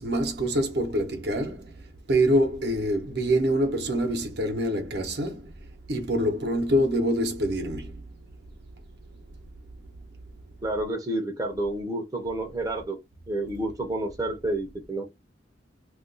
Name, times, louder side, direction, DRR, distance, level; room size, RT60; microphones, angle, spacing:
voice 1, 0.0-1.7 2.1-5.5 5.9-8.0, right 1 dB, 60° right, 0.8 m, -25 dB
voice 2, 10.6-13.0 13.3-15.0, right 1 dB, 20° right, 0.6 m, -29 dB
2.4 x 2.3 x 3.8 m
head